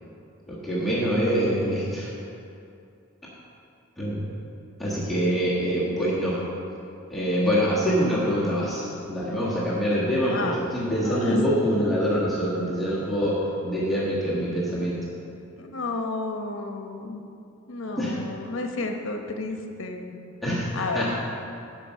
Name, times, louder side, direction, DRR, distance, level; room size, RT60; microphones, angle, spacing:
voice 1, 0.5-2.1 4.0-4.3 4.8-6.4 7.1-15.0 18.0-18.2 20.4-21.1, equal, ahead, -9 dB, 1.5 m, -25 dB
voice 2, 10.2-10.6 10.9-11.4 15.6-17.2 17.7-20.2 20.7-21.1, left 3 dB, 65° left, 4 dB, 0.9 m, -32 dB
9.7 x 5.4 x 6.3 m, 2.6 s
head